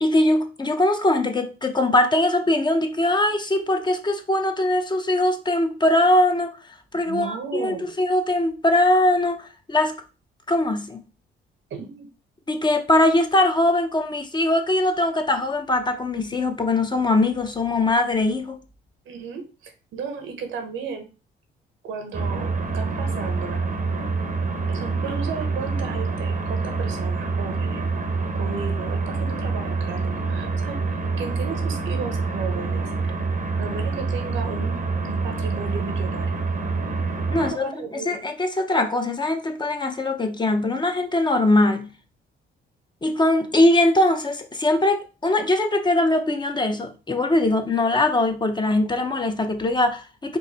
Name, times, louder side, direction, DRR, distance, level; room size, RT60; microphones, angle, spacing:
voice 1, 0.0-6.5 6.9-9.9 10.5-11.0 12.5-18.6 37.3-37.7 38.1-41.9 43.0-50.4, left 1 dB, 20° left, 0.8 m, -21 dB
voice 2, 7.1-7.9 11.7-12.1 19.0-21.1 21.8-23.7 24.7-27.8 28.3-32.9 33.6-34.8 35.0-36.4 37.4-38.2, right 5 dB, 85° right, 1.1 m, -34 dB
sound 1, 22.1-37.5, right 4 dB, 40° right, 0.8 m, -26 dB
4.7 x 2.7 x 4.2 m
cardioid pair, 90°, 20 cm